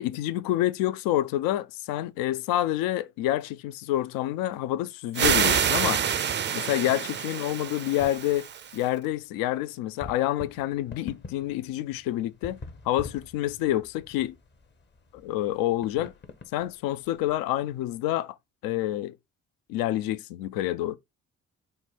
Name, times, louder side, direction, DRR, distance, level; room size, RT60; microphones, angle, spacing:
voice 1, 0.0-6.0 6.5-8.5 8.7-12.6 12.8-14.3 15.1-16.1 16.5-18.4 18.6-19.2 19.7-21.0, left 14 dB, 60° left, 0.5 m, -28 dB
sound 1, 5.1-8.8, right 8 dB, 30° right, 0.5 m, -27 dB
sound 2, 8.6-18.0, left 3 dB, 25° left, 0.8 m, -48 dB
3.9 x 2.1 x 4.3 m
figure-of-eight pair, 45°, 40 cm